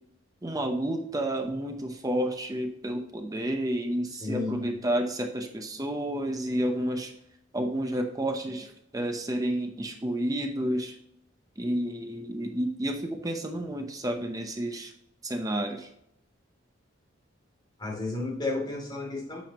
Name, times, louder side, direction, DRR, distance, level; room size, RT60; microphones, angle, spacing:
voice 1, 0.4-7.1 7.5-11.0 11.6-14.9 15.2-15.9, right 1 dB, 20° right, 4 dB, 0.8 m, -30 dB
voice 2, 4.2-4.7 17.8-19.4, left 3 dB, 25° left, -1 dB, 3.0 m, -32 dB
9.2 x 7.1 x 3.0 m, 0.77 s
head